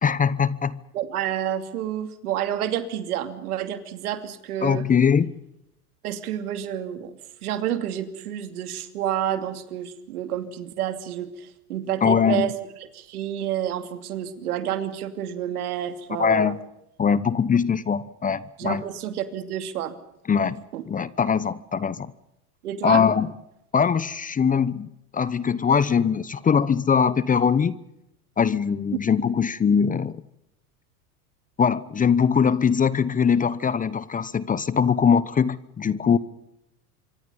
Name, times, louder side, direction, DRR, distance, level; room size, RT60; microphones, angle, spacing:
voice 1, 0.0-0.8 4.6-5.3 12.0-12.5 16.2-16.6 17.0-18.8 20.3-22.1 22.8-23.3 23.7-27.7 28.4-30.2 31.6-36.2, left 6 dB, 20° left, 18 dB, 0.9 m, -22 dB
voice 2, 0.9-4.8 6.0-7.1 7.4-12.5 12.9-16.5 18.6-19.9 20.7-20.8 22.6-23.0, right 10 dB, 75° right, 9 dB, 2.8 m, -29 dB
26.0 x 24.5 x 5.6 m, 0.82 s
hypercardioid pair, 95°, 45 cm